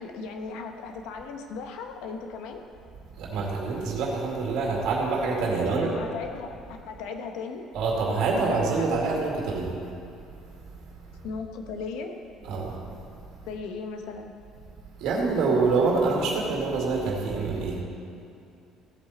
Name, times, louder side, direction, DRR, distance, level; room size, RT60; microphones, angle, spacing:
voice 1, 0.0-2.6 5.5-7.7 8.3-8.9 11.2-12.1 13.4-14.3, left 4 dB, 80° left, 5 dB, 1.2 m, -37 dB
voice 2, 3.2-5.9 7.7-9.7 12.5-12.8 15.0-17.8, right 4 dB, 70° right, -2 dB, 2.2 m, -26 dB
15.5 x 8.3 x 4.3 m, 2.6 s
cardioid pair, 140°, 0 cm